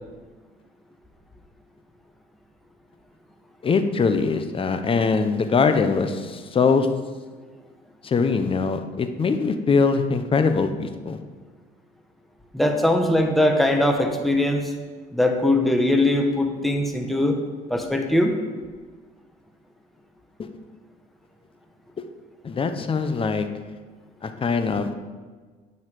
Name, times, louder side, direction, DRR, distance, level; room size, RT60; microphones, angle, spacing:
voice 1, 3.6-6.9 8.0-11.2 20.4-20.5 22.4-23.5 24.2-24.9, left 5 dB, 30° left, 8 dB, 1.0 m, -22 dB
voice 2, 12.5-14.7 15.1-17.4 17.7-18.4, left 1 dB, ahead, 3 dB, 1.2 m, -21 dB
9.3 x 5.7 x 7.8 m, 1.4 s
cardioid pair, 110°, 17 cm